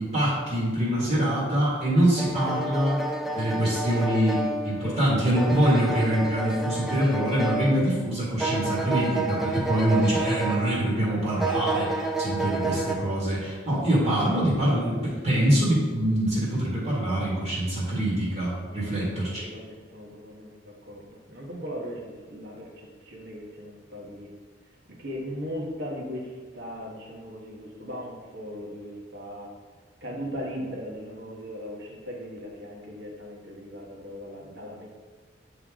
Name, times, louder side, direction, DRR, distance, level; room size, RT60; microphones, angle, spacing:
voice 1, 0.0-3.0 3.3-19.5, right 1 dB, 35° right, -7 dB, 1.9 m, -24 dB
sound 1, 2.2-8.0 8.4-11.1 11.4-13.0, right 2 dB, ahead, 0.5 m, -30 dB
voice 2, 4.8-5.6 12.2-12.3 18.6-24.3 25.0-29.5 30.0-34.9, equal, 60° right, -1 dB, 1.4 m, -38 dB
9.6 x 3.4 x 3.7 m, 1.4 s
head